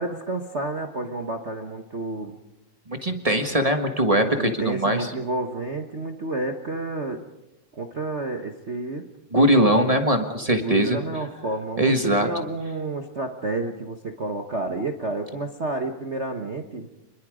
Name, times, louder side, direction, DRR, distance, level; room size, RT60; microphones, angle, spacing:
voice 1, 0.0-2.4 3.5-3.6 4.1-7.2 7.7-9.0 10.6-16.9, right 2 dB, 65° right, 3 dB, 0.6 m, -30 dB
voice 2, 2.9-5.1 9.3-11.0 11.8-12.3, right 1 dB, 25° right, 6 dB, 0.7 m, -21 dB
28.5 x 21.5 x 5.1 m, 0.92 s
omnidirectional pair, 3.3 m